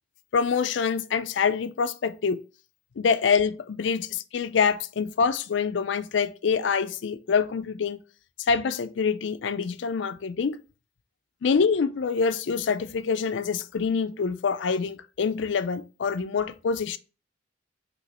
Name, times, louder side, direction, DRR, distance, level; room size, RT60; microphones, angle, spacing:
voice 1, 0.3-2.4 3.0-8.0 8.4-10.6 11.4-17.0, left 5 dB, 70° left, 0.4 m, -25 dB
6.1 x 2.9 x 2.9 m
head